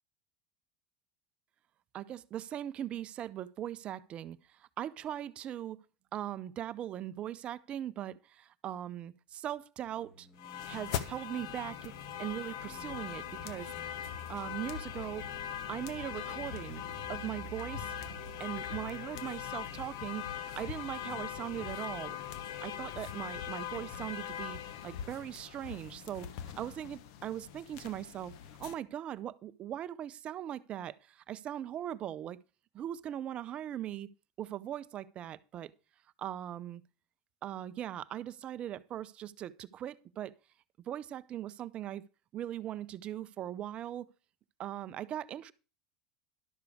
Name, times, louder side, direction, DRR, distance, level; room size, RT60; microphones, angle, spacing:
voice 1, 1.9-5.8 6.1-10.3 10.6-11.9 12.2-13.7 14.3-15.3 15.7-16.8 17.1-17.9 18.4-22.2 22.6-26.3 26.5-28.3 28.6-32.4 32.7-34.1 34.4-35.7 36.2-36.8 37.4-40.3 40.9-42.0 42.3-44.1 44.6-45.5, right 11 dB, 40° right, 0.5 m, -40 dB
sound 1, 9.8-20.9, right 1 dB, 20° left, 2.8 m, -53 dB
sound 2, 10.4-28.7, left 10 dB, 75° left, 0.9 m, -41 dB
11.5 x 6.8 x 4.8 m
supercardioid pair, 120°, 3 cm